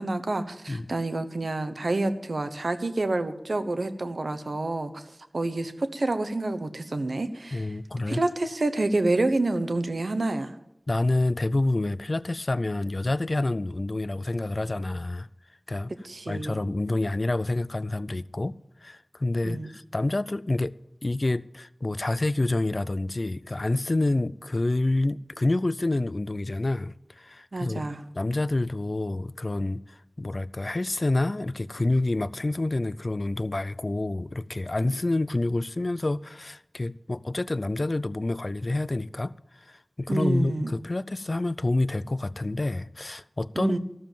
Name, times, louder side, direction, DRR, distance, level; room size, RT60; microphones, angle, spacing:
voice 1, 0.0-5.0 5.3-7.7 8.1-10.5 16.0-16.6 19.4-19.7 27.5-28.0 40.1-40.7 43.5-43.8, right 2 dB, 85° right, 1.0 m, -28 dB
voice 2, 7.5-8.2 10.9-15.3 15.7-15.9 16.3-18.5 18.8-20.7 21.0-27.8 28.2-43.8, left 2 dB, 55° left, 0.4 m, -28 dB
14.0 x 7.3 x 9.1 m
wide cardioid pair, 50°, 0 cm